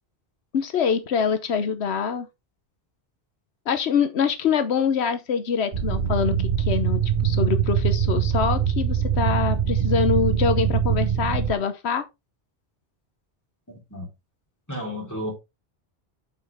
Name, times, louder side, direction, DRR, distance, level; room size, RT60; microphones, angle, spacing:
voice 1, 0.5-2.3 3.7-12.0, left 6 dB, 85° left, 1.1 m, -24 dB
sound 1, 5.7-11.5, right 8 dB, 50° right, 1.1 m, -23 dB
voice 2, 13.7-14.1 14.7-15.3, equal, 15° left, 4.0 m, -32 dB
8.7 x 5.8 x 3.5 m
omnidirectional pair, 1.1 m